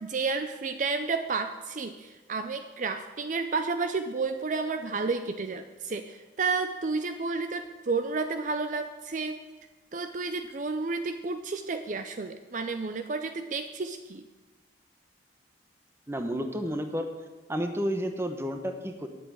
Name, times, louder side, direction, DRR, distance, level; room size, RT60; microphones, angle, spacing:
voice 1, 0.0-9.4 9.9-14.2, right 4 dB, 45° right, 8 dB, 0.5 m, -31 dB
voice 2, 16.1-17.1 17.5-19.1, equal, 15° right, 6 dB, 0.9 m, -31 dB
8.7 x 7.8 x 9.1 m, 1.2 s
head